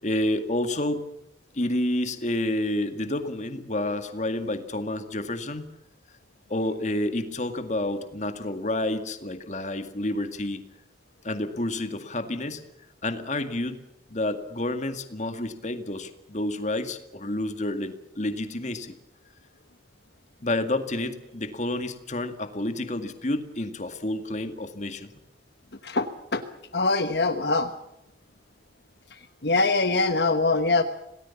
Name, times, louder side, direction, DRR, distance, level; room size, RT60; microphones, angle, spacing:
voice 1, 0.0-1.0 1.5-5.7 6.5-10.6 11.2-12.6 13.0-13.8 14.1-19.0 20.4-25.1, left 1 dB, 40° left, 8 dB, 2.1 m, -29 dB
voice 2, 26.7-27.7 29.4-30.8, left 3 dB, 65° left, 8 dB, 1.2 m, -23 dB
27.0 x 18.5 x 7.3 m, 0.89 s
head